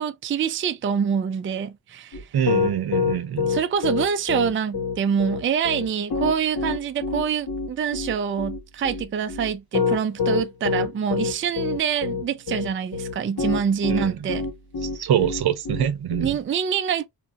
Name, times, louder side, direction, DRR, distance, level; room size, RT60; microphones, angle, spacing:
voice 1, 0.0-2.3 3.5-14.5 16.2-17.1, right 7 dB, 35° right, 0.4 m, -25 dB
Piano, 2.1-16.3, left 5 dB, 70° left, 1.3 m, -26 dB
voice 2, 2.3-3.5 13.9-14.3 15.0-16.4, right 9 dB, 80° right, 0.7 m, -24 dB
2.9 x 2.4 x 2.8 m
cardioid pair, 80°, 38 cm